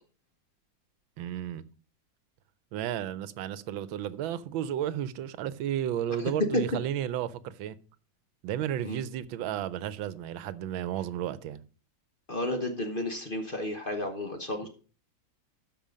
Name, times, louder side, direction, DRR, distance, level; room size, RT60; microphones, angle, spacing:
voice 1, 1.2-1.6 2.7-7.8 8.4-11.6, right 10 dB, 85° right, 1.5 m, -33 dB
voice 2, 12.3-14.7, left 1 dB, 35° left, 1.0 m, -33 dB
13.0 x 5.2 x 5.1 m
omnidirectional pair, 2.1 m